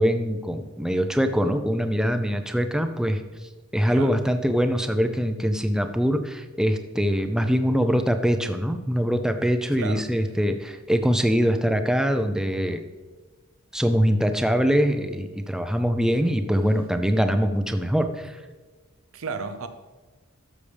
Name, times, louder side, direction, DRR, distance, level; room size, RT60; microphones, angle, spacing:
voice 1, 0.0-3.2 3.7-12.8 13.7-18.4, equal, 5° right, 0.5 m, -23 dB
voice 2, 9.7-10.1 19.1-19.7, right 4 dB, 70° right, 0.7 m, -33 dB
12.5 x 6.6 x 3.4 m
head